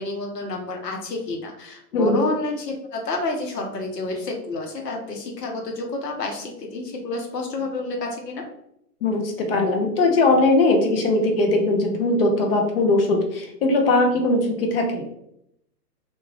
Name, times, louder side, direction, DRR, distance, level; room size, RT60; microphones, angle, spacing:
voice 1, 0.0-8.4, left 2 dB, 85° left, 2 dB, 1.0 m, -29 dB
voice 2, 1.9-2.3 9.0-15.0, left 2 dB, 40° left, 2 dB, 0.6 m, -20 dB
2.5 x 2.3 x 3.2 m, 0.75 s
hypercardioid pair, 130°, 48 cm